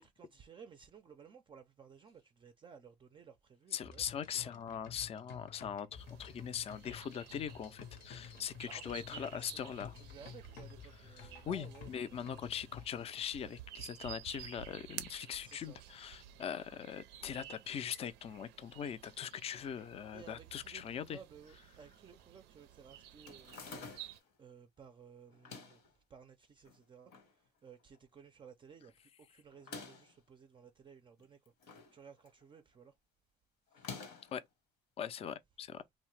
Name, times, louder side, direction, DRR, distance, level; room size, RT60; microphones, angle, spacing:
voice 1, 0.0-4.5 8.7-12.5 15.4-15.8 16.3-16.4 20.1-23.7 24.4-33.0 33.7-34.0, right 6 dB, 30° right, 0.4 m, -57 dB
voice 2, 3.7-10.0 11.1-21.2 34.3-34.4 35.0-35.8, left 8 dB, 35° left, 0.4 m, -41 dB
sound 1, 3.8-12.9, left 7 dB, 70° left, 0.7 m, -52 dB
sound 2, 6.0-24.2, right 12 dB, 90° right, 0.5 m, -53 dB
sound 3, 23.3-24.3 25.3-25.9 26.7-27.3 27.7-27.8 27.9-28.0 29.5-30.2 31.2-31.9 32.3-32.6 33.7-34.4, left 4 dB, 85° left, 1.1 m, -49 dB
2.8 x 2.0 x 3.1 m
cardioid pair, 110°, 17 cm